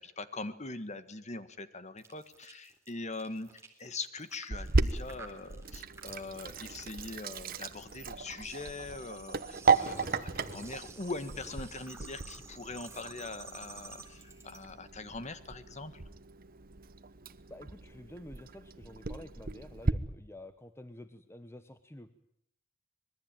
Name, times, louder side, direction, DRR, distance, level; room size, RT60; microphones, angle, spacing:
voice 1, 0.0-16.0, left 3 dB, 35° left, 12 dB, 1.7 m, -42 dB
sound 1, 2.0-14.6, right 3 dB, 15° right, 3.8 m, -51 dB
Sink (filling or washing), 4.5-19.9, right 4 dB, 50° right, 1.1 m, -35 dB
voice 2, 17.5-22.1, left 1 dB, 15° left, 10 dB, 1.0 m, -49 dB
25.5 x 21.0 x 9.1 m, 0.75 s
head